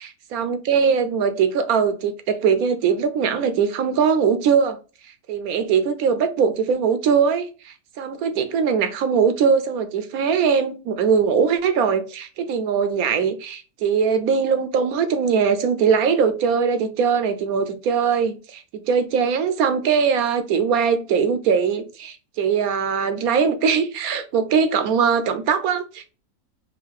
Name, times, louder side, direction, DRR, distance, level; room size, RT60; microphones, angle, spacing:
voice 1, 0.0-4.8 5.3-26.1, right 6 dB, 75° right, 1.0 m, -21 dB
4.8 x 2.6 x 3.4 m
omnidirectional pair, 1.7 m